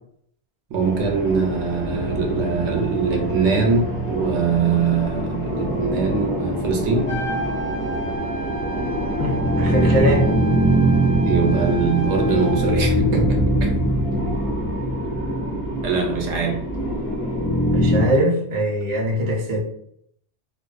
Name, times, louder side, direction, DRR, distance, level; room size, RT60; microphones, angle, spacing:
voice 1, 0.7-7.2 11.2-13.8 15.8-16.6, right 5 dB, 75° right, 1 dB, 0.8 m, -22 dB
sound 1, 0.8-18.0, equal, 10° left, 1.1 m, -23 dB
Trumpet, 7.0-12.8, right 3 dB, 60° left, 0.4 m, -32 dB
voice 2, 9.2-10.3 17.7-19.7, right 1 dB, 35° right, -2 dB, 0.5 m, -22 dB
2.4 x 2.1 x 2.3 m, 0.69 s
omnidirectional pair, 1.2 m